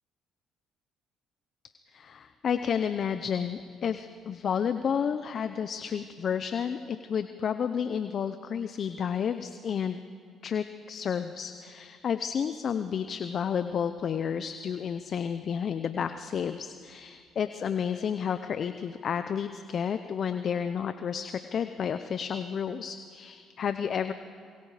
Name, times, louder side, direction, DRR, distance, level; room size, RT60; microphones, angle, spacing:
voice 1, 1.9-10.0 10.4-24.1, left 7 dB, 55° left, 10 dB, 0.8 m, -31 dB
26.5 x 22.5 x 5.0 m, 2.3 s
supercardioid pair, 80°, 0 cm